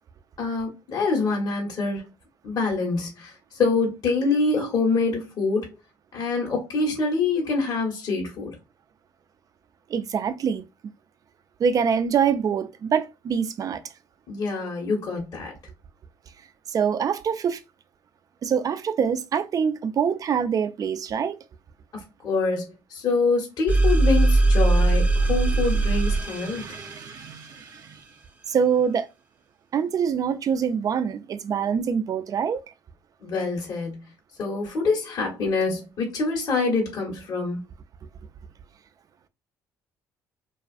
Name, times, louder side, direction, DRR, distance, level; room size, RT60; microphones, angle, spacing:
voice 1, 0.4-2.0 2.4-3.3 3.6-5.7 6.1-8.5 14.3-15.5 22.2-26.6 33.2-34.0 34.4-37.6, left 4 dB, 50° left, 1.2 m, -25 dB
voice 2, 9.9-10.6 11.6-13.8 16.7-17.6 18.4-21.4 25.2-25.3 26.2-28.0 28.5-29.1 29.7-32.6, right 7 dB, 45° right, 0.4 m, -25 dB
sound 1, 23.7-27.2, right 2 dB, 20° right, 0.7 m, -20 dB
2.4 x 2.4 x 2.5 m
hypercardioid pair, 60°, 8 cm